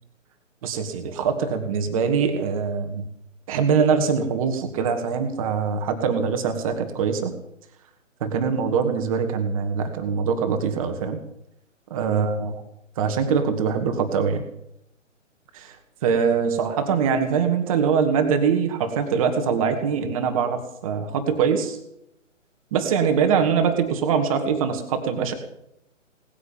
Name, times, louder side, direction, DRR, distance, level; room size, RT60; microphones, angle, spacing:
voice 1, 0.6-3.0 3.5-7.3 8.2-11.2 11.9-12.6 13.0-14.4 15.5-15.7 16.0-21.8 22.7-25.4, right 6 dB, 25° right, 7 dB, 2.1 m, -23 dB
19.0 x 9.9 x 7.5 m, 0.78 s
figure-of-eight pair, 140°, 39 cm